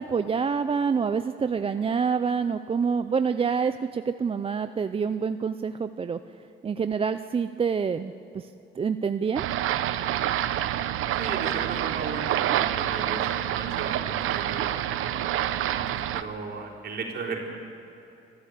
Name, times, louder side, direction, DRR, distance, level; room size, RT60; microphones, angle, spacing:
voice 1, 0.0-6.2 6.6-8.5 8.8-9.4, right 6 dB, 25° right, 10 dB, 0.5 m, -27 dB
sound 1, 9.4-16.2, right 12 dB, 85° right, 0.8 m, -27 dB
voice 2, 11.1-13.2 13.5-17.4, right 4 dB, 50° right, -2 dB, 4.1 m, -36 dB
26.0 x 13.0 x 8.3 m, 2.9 s
cardioid pair, 120°, 21 cm